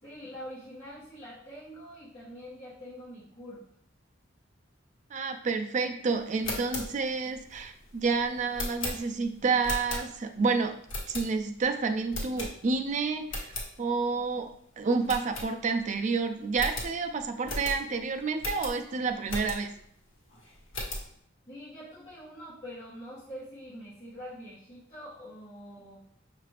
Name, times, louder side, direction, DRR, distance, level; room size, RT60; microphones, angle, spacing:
voice 1, 0.0-3.6 21.5-26.0, equal, 35° left, -11 dB, 1.1 m, -45 dB
voice 2, 5.1-10.7 11.1-19.7, right 4 dB, 35° right, 6 dB, 0.3 m, -29 dB
sound 1, 6.3-10.4 10.9-11.6 12.1-12.9 13.2-13.7 14.1-14.2 14.5-14.6 15.0-15.9 16.2-16.3 16.5-19.8 20.3-21.1, left 1 dB, 75° left, 1.1 m, -37 dB
5.7 x 2.5 x 3.2 m, 0.68 s
head